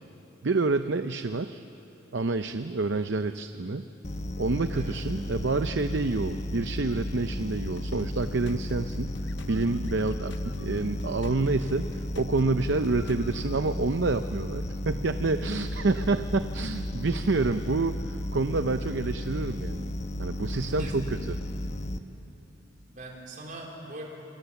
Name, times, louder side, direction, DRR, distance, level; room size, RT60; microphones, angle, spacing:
voice 1, 0.4-1.6 2.1-3.9 4.4-9.1 9.5-19.9 20.2-21.4, right 3 dB, 60° right, 9 dB, 0.6 m, -28 dB
sound 1, 4.0-22.0, left 1 dB, 35° left, 1.0 m, -34 dB
sound 2, 7.8-13.6, left 3 dB, 60° left, 0.7 m, -47 dB
voice 2, 20.8-21.2 22.9-24.0, right 2 dB, 40° right, 0 dB, 4.1 m, -42 dB
27.0 x 26.0 x 7.1 m, 2.9 s
head